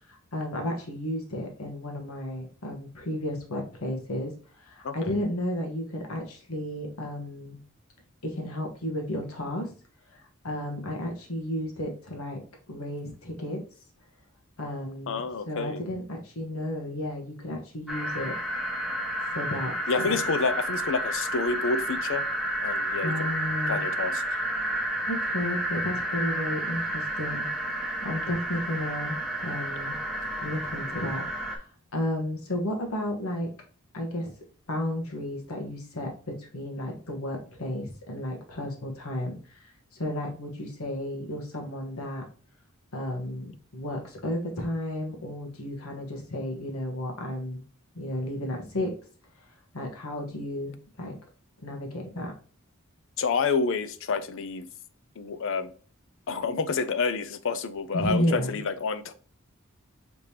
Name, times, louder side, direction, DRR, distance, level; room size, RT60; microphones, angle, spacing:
voice 1, 0.1-7.6 8.2-9.7 10.1-10.2 10.4-12.4 12.7-13.6 14.6-18.4 19.3-19.7 20.0-20.2 23.0-23.8 25.1-30.0 30.4-31.7 31.9-33.5 33.9-34.3 34.7-39.7 40.0-42.2 42.9-47.6 47.9-48.9 49.7-51.2 51.6-52.3 57.9-58.6, left 1 dB, 85° left, 1 dB, 1.3 m, -33 dB
voice 2, 15.1-15.8 19.9-22.2 22.6-23.3 23.7-24.2 53.2-54.7 55.2-55.7 56.3-59.1, left 4 dB, 65° left, 13 dB, 0.5 m, -28 dB
sound 1, 17.9-31.6, right 1 dB, ahead, 0.8 m, -31 dB
5.1 x 3.4 x 2.8 m, 0.41 s
head